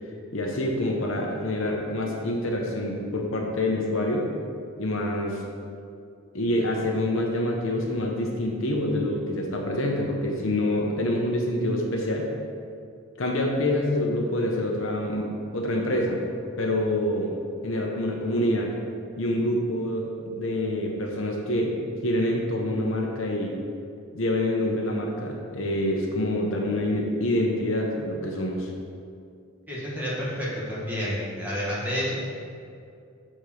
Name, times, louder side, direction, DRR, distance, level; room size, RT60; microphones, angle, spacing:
voice 1, 0.3-4.3 4.8-5.4 6.3-12.3 13.2-16.2 16.6-17.4 17.6-18.7 19.2-21.8 22.0-23.6 24.1-28.7, left 1 dB, 60° left, 0 dB, 0.9 m, -26 dB
voice 2, 29.7-32.2, equal, 5° right, -7 dB, 1.7 m, -29 dB
6.8 x 4.3 x 6.3 m, 2.4 s
head